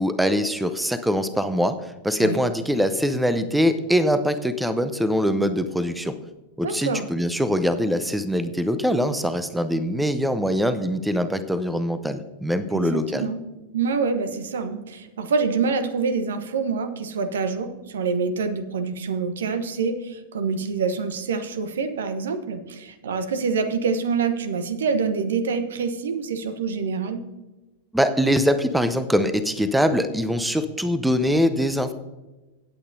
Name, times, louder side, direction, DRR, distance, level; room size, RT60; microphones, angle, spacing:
voice 1, 0.0-1.8 2.0-6.1 6.6-13.3 27.9-31.9, equal, 5° right, 12 dB, 0.7 m, -23 dB
voice 2, 6.6-7.1 12.7-13.4 13.7-27.2, right 5 dB, 65° right, 10 dB, 0.9 m, -26 dB
17.0 x 8.6 x 2.7 m, 1.1 s
figure-of-eight pair, 90°, 0 cm